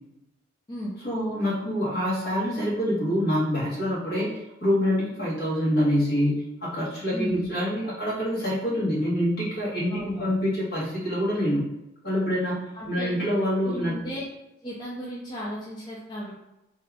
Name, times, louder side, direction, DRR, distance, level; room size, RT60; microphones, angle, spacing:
voice 1, 1.0-11.6 12.0-13.9, equal, 55° left, -7 dB, 1.4 m, -26 dB
voice 2, 7.1-7.5 9.9-10.4 12.7-13.2 13.7-14.2 14.6-16.4, equal, 25° left, -6 dB, 0.4 m, -35 dB
2.7 x 2.4 x 3.3 m, 0.93 s
head